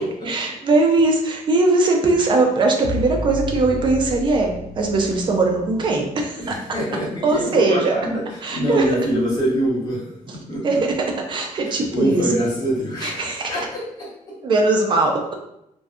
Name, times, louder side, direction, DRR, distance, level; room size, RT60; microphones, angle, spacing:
voice 1, 0.3-6.6 7.2-7.9 8.4-8.9 10.3-10.4 10.6-12.2 13.0-13.6 14.4-15.2, right 3 dB, 35° right, 2 dB, 0.4 m, -20 dB
sound 1, 2.8-5.9, left 2 dB, 80° left, 0.4 m, -32 dB
voice 2, 6.4-8.2 8.5-10.8 11.7-13.8, equal, 30° left, -7 dB, 0.9 m, -24 dB
2.5 x 2.2 x 2.4 m, 0.81 s
cardioid pair, 165°, 14 cm